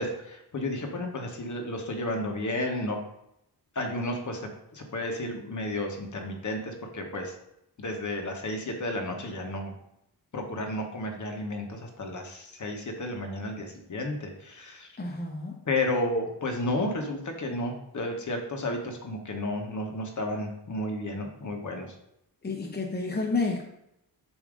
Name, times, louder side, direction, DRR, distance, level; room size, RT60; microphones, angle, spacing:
voice 1, 0.0-3.0 3.7-4.4 4.7-7.3 7.8-9.8 10.3-14.9 15.7-21.9, left 1 dB, 45° left, 3 dB, 1.0 m, -32 dB
voice 2, 15.0-15.6 22.4-23.6, left 3 dB, 25° left, 0 dB, 0.7 m, -30 dB
7.1 x 2.7 x 5.0 m, 0.79 s
wide cardioid pair, 160°, 40 cm